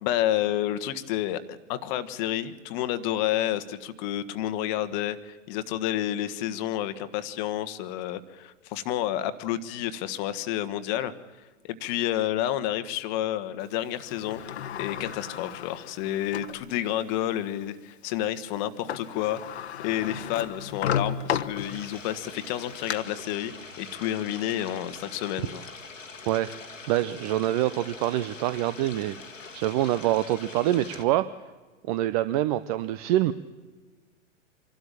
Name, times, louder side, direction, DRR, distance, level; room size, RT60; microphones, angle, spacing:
voice 1, 0.0-11.1 11.6-14.4 14.8-25.6, left 12 dB, 35° left, 12 dB, 1.3 m, -30 dB
Sliding door, 14.0-16.6 17.2-17.3 18.6-18.7 18.9-22.1 22.5-22.9, left 9 dB, 55° left, 1.1 m, -33 dB
sound 1, 21.6-31.0, left 4 dB, 85° left, 1.4 m, -44 dB
voice 2, 26.9-29.2 29.5-31.3 31.9-33.3, right 14 dB, 30° right, 14 dB, 0.6 m, -25 dB
26.0 x 12.5 x 8.9 m, 1.3 s
figure-of-eight pair, 105°, 38 cm